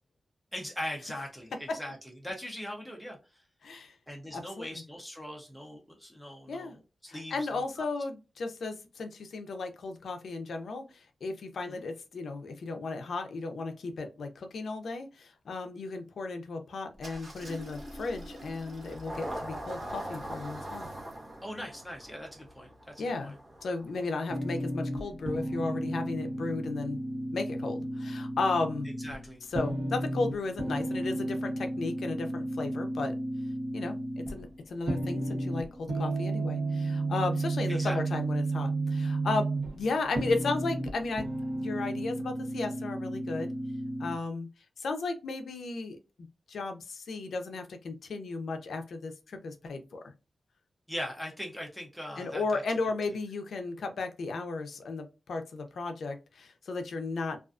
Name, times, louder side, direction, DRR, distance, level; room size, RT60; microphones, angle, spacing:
voice 1, 0.5-3.4 4.1-7.9 11.7-11.9 21.4-23.3 29.0-29.4 37.7-38.0 50.9-52.6, equal, ahead, 0 dB, 0.5 m, -40 dB
voice 2, 3.6-4.0 4.3-4.8 6.5-6.8 7.1-20.9 23.0-23.3 23.6-27.0 27.3-28.9 29.5-33.2 33.7-34.0 34.3-39.5 39.7-41.3 41.5-43.5 44.0-44.5 44.8-46.0 46.5-50.1 52.2-57.4, left 3 dB, 90° left, 6 dB, 0.4 m, -34 dB
Engine starting, 17.0-24.3, right 1 dB, 45° right, 1.0 m, -42 dB
sound 1, 24.3-44.2, right 2 dB, 90° right, 0.9 m, -33 dB
2.4 x 2.3 x 2.3 m, 0.29 s
wide cardioid pair, 175°, 0 cm